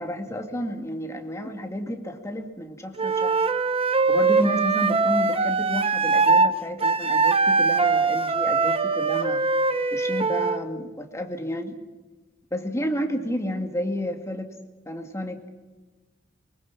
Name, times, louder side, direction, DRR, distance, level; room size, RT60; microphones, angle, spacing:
voice 1, 0.0-3.4 4.1-9.4 9.9-11.8 12.5-14.6 14.9-15.4, equal, 15° left, 4 dB, 2.2 m, -31 dB
Wind instrument woodwind instrument, 3.0-6.5 6.8-10.6, right 4 dB, 30° right, 0.9 m, -22 dB
23.5 x 23.5 x 6.0 m, 1.2 s
head